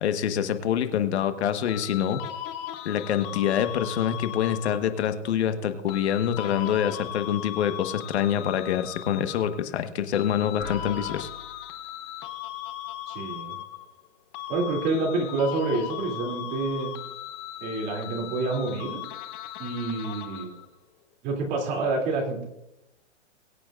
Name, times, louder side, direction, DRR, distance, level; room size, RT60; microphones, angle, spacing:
voice 1, 0.0-2.2 2.8-11.3, left 9 dB, 60° left, 8 dB, 1.4 m, -26 dB
sound 1, 1.7-5.0 5.9-9.7 10.1-14.1 14.3-20.7, left 12 dB, 20° left, 0.7 m, -38 dB
sound 2, 10.6-12.2, left 4 dB, 90° left, 2.7 m, -41 dB
voice 2, 13.1-13.6 14.5-16.9 17.6-19.0 19.6-20.5 21.2-22.5, right 3 dB, 25° right, 0 dB, 2.8 m, -28 dB
22.5 x 8.9 x 2.5 m, 0.89 s
hypercardioid pair, 155°, 37 cm